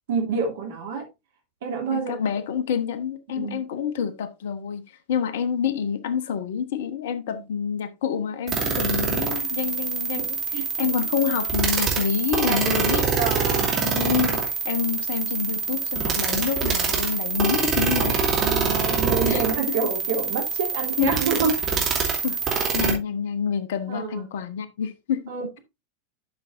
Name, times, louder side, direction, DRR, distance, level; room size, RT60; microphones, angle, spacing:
voice 1, 0.1-1.0 1.6-2.2 3.4-3.6 7.3-7.4 10.5-10.6 12.4-13.7 18.4-21.5 23.9-24.2 25.3-25.6, right 5 dB, 55° right, 3.0 m, -27 dB
voice 2, 1.9-4.8 5.1-10.4 10.8-13.1 13.5-18.3 19.2-19.9 21.0-21.2 22.2-25.3, left 7 dB, 55° left, 1.0 m, -27 dB
sound 1, 8.5-22.9, right 5 dB, 30° right, 2.6 m, -25 dB
12.0 x 6.2 x 2.6 m
figure-of-eight pair, 90°, 0 cm